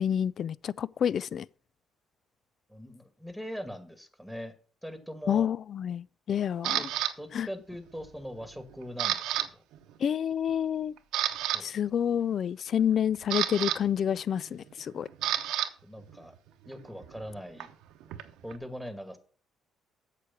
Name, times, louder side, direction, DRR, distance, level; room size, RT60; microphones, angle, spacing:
voice 1, 0.0-1.5 5.3-6.8 7.3-7.5 10.0-10.9 11.6-15.1, left 9 dB, 55° left, 0.4 m, -28 dB
voice 2, 2.7-4.5 4.8-5.5 6.7-6.9 7.2-9.6 11.5-11.7 15.8-16.4 16.7-17.7 18.4-19.2, equal, 5° left, 2.1 m, -41 dB
Camera, 6.6-7.1 7.7-8.1 8.4-9.5 9.7-9.9 10.5-10.6 11.0-11.6 12.8-15.7 16.0-18.6, right 12 dB, 80° right, 0.9 m, -31 dB
8.4 x 6.7 x 5.9 m
supercardioid pair, 65°, 0 cm